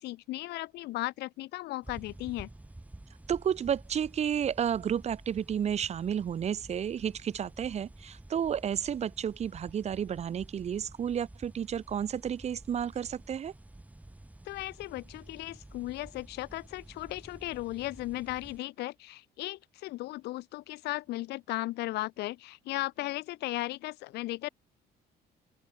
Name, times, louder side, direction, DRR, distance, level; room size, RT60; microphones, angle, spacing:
voice 1, 0.0-2.5 14.4-24.5, left 18 dB, 80° left, 1.2 m, -36 dB
sound 1, 1.8-18.6, right 1 dB, 10° right, 4.6 m, -51 dB
voice 2, 3.3-13.5, right 8 dB, 40° right, 0.9 m, -31 dB
open air
cardioid pair, 110°, 17 cm